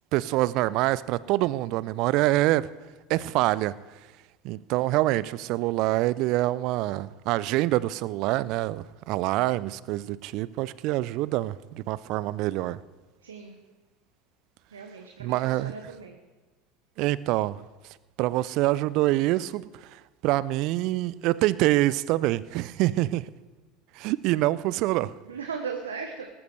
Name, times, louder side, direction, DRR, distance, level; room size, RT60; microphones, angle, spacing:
voice 1, 0.1-2.7 3.1-3.7 4.4-12.8 15.2-15.7 17.0-17.6 18.2-19.6 20.2-23.2 24.0-25.1, right 17 dB, 50° right, 20 dB, 0.4 m, -25 dB
voice 2, 13.2-13.6 14.7-16.2 25.3-26.3, right 5 dB, 75° right, 4 dB, 1.0 m, -37 dB
19.0 x 13.0 x 3.3 m, 1.2 s
figure-of-eight pair, 75°, 0 cm